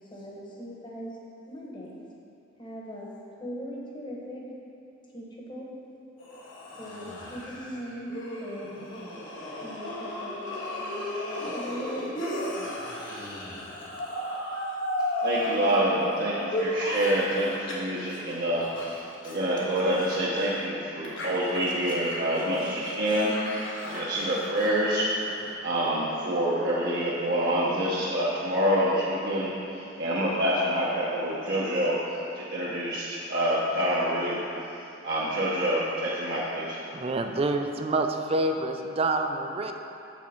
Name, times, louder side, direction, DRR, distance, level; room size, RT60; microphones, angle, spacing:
voice 1, 0.1-1.2 1.5-1.9 2.6-3.1 3.4-4.5 5.1-5.7 6.8-8.9 9.6-10.5 10.8-11.0 11.5-12.5, equal, 25° left, -4 dB, 1.2 m, -39 dB
sound 1, 6.2-17.7 18.0-20.6 21.0-25.5, left 1 dB, 75° left, 1.4 m, -35 dB
voice 2, 15.2-19.0 19.2-25.1 25.6-34.4 35.0-36.8, equal, 55° right, -8 dB, 0.9 m, -27 dB
voice 3, 36.9-39.7, right 2 dB, 30° right, 5 dB, 0.4 m, -27 dB
7.3 x 6.2 x 4.3 m, 2.7 s
head